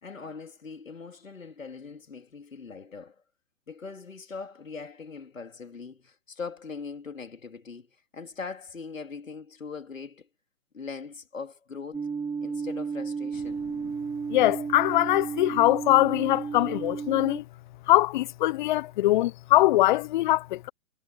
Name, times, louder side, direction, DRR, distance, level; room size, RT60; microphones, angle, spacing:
voice 1, 0.0-3.2 3.7-10.3 10.7-12.1 12.4-13.7, left 5 dB, 80° left, 4.1 m, -41 dB
sound 1, 11.9-17.4, right 5 dB, 10° right, 2.7 m, -33 dB
voice 2, 14.3-17.4 17.9-20.7, left 16 dB, 40° left, 1.0 m, -22 dB
figure-of-eight pair, 125°, 39 cm